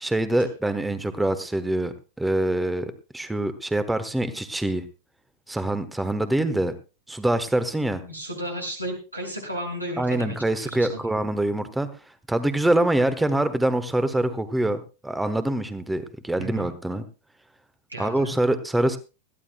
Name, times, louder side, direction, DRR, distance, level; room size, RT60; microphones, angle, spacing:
voice 1, 0.0-4.8 5.5-6.7 7.1-8.0 10.0-11.9 12.3-17.0 18.0-19.0, right 1 dB, 5° right, 11 dB, 1.1 m, -25 dB
voice 2, 8.0-10.9 16.4-16.7 17.9-18.4, right 1 dB, 90° right, 0 dB, 5.6 m, -33 dB
21.0 x 14.5 x 2.2 m, 0.31 s
figure-of-eight pair, 90°, 0 cm